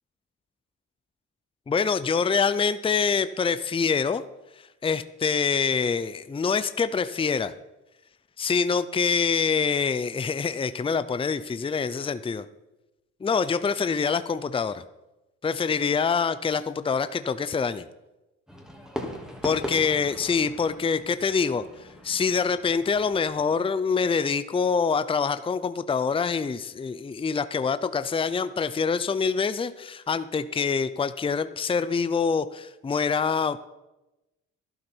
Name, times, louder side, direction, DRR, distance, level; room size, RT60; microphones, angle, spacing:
voice 1, 1.7-4.2 4.8-7.5 8.4-12.5 13.2-14.8 15.4-17.9 19.4-21.6 22.0-33.6, left 5 dB, 20° left, 13 dB, 0.5 m, -25 dB
Fireworks, 18.5-23.5, equal, ahead, 2.4 m, -39 dB
12.0 x 12.0 x 4.5 m, 1.0 s
cardioid pair, 90°, 30 cm